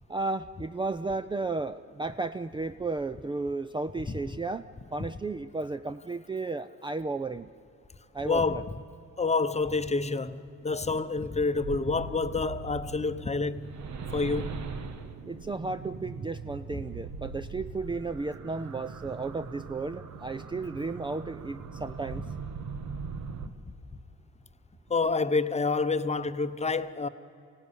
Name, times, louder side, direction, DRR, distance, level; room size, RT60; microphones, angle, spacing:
voice 1, 0.1-4.6 4.9-7.5 8.1-8.6 15.3-22.2, right 3 dB, 15° right, 0.5 m, -34 dB
voice 2, 8.2-8.7 9.2-13.7 14.1-14.6 16.7-16.8 24.9-27.1, left 4 dB, 20° left, 0.9 m, -28 dB
sound 1, 11.6-23.5, right 5 dB, 65° right, 1.4 m, -40 dB
23.5 x 16.5 x 9.8 m
cardioid pair, 90°, 30 cm